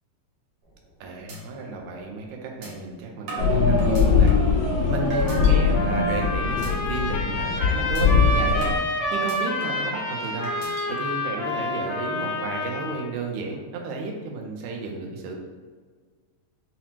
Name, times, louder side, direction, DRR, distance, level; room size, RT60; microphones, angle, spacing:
sound 1, 0.6-0.9 1.3-1.4 1.8-1.9 2.6-2.7 3.3-4.5 5.1-5.5 6.0-6.2 6.6-6.7 7.1-7.3 7.9-8.0 8.6-9.9 10.4-10.9, right 3 dB, 65° right, 1.6 m, -38 dB
voice 1, 1.0-4.4 4.9-10.5 10.9-15.3, right 3 dB, 80° right, 1 dB, 1.7 m, -33 dB
sound 2, 3.4-8.8, left 5 dB, 60° left, 2.2 m, -21 dB
Trumpet, 5.2-13.1, left 1 dB, 80° left, 2.1 m, -29 dB
5.8 x 2.0 x 2.8 m, 1.5 s
omnidirectional pair, 3.8 m